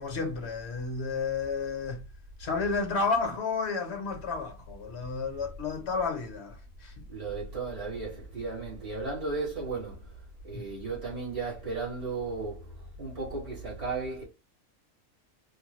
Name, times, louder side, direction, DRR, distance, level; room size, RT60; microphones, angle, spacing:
voice 1, 0.0-2.0 2.4-7.0 10.5-10.7, left 4 dB, 55° left, 1.2 m, -31 dB
voice 2, 7.1-14.2, right 3 dB, 60° right, 3.2 m, -35 dB
5.2 x 2.2 x 3.1 m
omnidirectional pair, 1.4 m